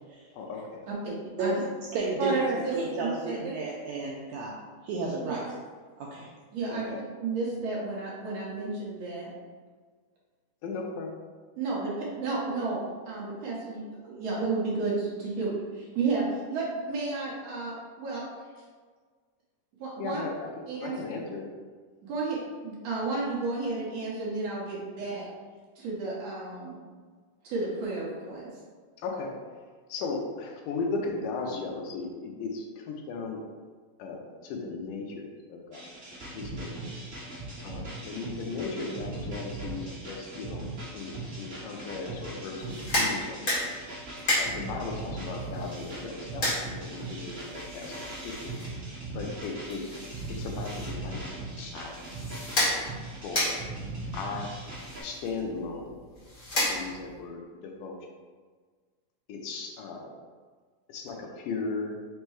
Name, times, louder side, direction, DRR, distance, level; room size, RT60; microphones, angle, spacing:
voice 1, 0.3-0.8 6.7-7.0 10.6-11.2 20.0-21.5 29.0-29.3 29.9-33.4 34.0-35.9 36.3-36.9 37.6-43.4 44.4-48.6 49.1-49.8 50.3-52.0 53.2-53.6 54.1-54.5 55.0-56.3 56.5-58.0 59.3-60.1 60.9-62.0, left 4 dB, 80° left, 1 dB, 2.1 m, -37 dB
voice 2, 1.0-1.5 2.2-3.4 5.2-5.4 6.5-6.9 7.2-9.3 11.6-18.2 19.8-20.2 20.7-20.9 22.0-25.3 25.8-26.8 27.4-28.5, right 3 dB, 65° right, -6 dB, 1.8 m, -32 dB
voice 3, 1.9-2.3 2.7-4.5 4.8-5.6 6.0-6.3, right 3 dB, 85° right, -4 dB, 1.5 m, -32 dB
sound 1, 35.7-55.0, right 2 dB, 50° right, 0.9 m, -39 dB
sound 2, 42.6-57.2, left 1 dB, 50° left, 1.0 m, -34 dB
5.4 x 2.2 x 4.5 m, 1.5 s
omnidirectional pair, 3.8 m